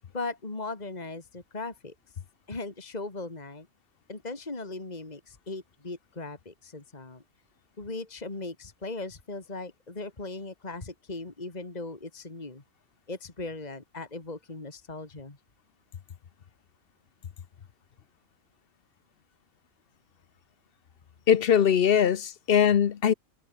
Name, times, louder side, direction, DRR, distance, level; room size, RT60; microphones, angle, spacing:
voice 1, 0.1-1.9 2.5-3.7 4.1-7.2 7.8-12.6 13.1-15.4, left 3 dB, 30° left, 2.5 m, -38 dB
voice 2, 21.3-23.1, left 8 dB, 50° left, 0.9 m, -21 dB
omnidirectional pair, 1.3 m